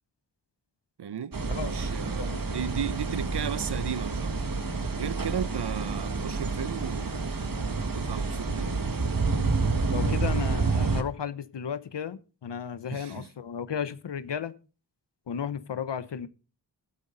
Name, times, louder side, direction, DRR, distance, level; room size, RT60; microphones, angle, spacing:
voice 1, 1.0-4.4 4.9-7.2 7.8-8.8 12.9-13.3, right 8 dB, 70° right, 0.9 m, -35 dB
sound 1, 1.3-11.0, right 4 dB, 55° right, 1.8 m, -29 dB
voice 2, 9.9-14.5 15.3-16.3, left 8 dB, 80° left, 0.9 m, -34 dB
12.5 x 12.5 x 3.9 m
cardioid pair, 45°, 42 cm